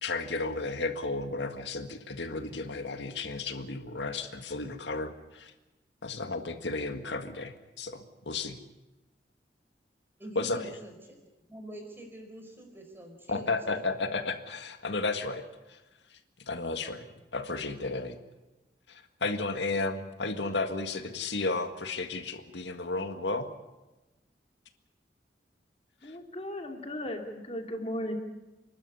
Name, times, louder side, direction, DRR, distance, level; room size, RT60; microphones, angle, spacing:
voice 1, 0.0-5.5 6.0-8.6 10.4-10.8 13.3-15.4 15.7-15.8 16.5-17.0 17.3-18.2 18.9-23.5 26.0-26.1, left 3 dB, 85° left, 7 dB, 1.8 m, -33 dB
voice 2, 10.2-13.8, right 1 dB, 15° right, 3 dB, 4.9 m, -46 dB
voice 3, 26.0-28.1, left 1 dB, 35° left, 3 dB, 2.6 m, -36 dB
28.5 x 12.5 x 9.8 m, 1.1 s
head